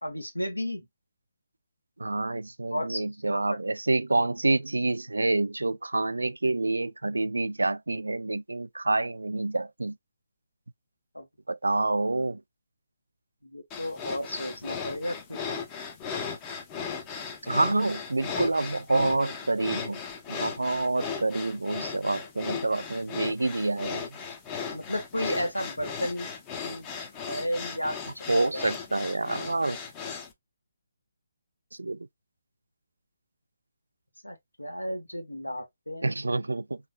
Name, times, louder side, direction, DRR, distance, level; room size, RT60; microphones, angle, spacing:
voice 1, 0.0-0.8 2.7-3.0 3.3-3.4 11.1-11.2 13.4-15.4 24.7-26.3 26.6-26.9 27.3-28.6 34.2-36.1, equal, 90° left, 1.3 m, -33 dB
voice 2, 2.0-9.9 11.5-12.4 17.4-20.0 20.3-24.0 28.3-29.8 31.8-32.0 36.0-36.8, right 2 dB, 75° right, 0.3 m, -27 dB
sound 1, 13.7-30.3, left 6 dB, 20° left, 0.7 m, -37 dB
3.6 x 3.1 x 2.2 m
figure-of-eight pair, 145°, 0 cm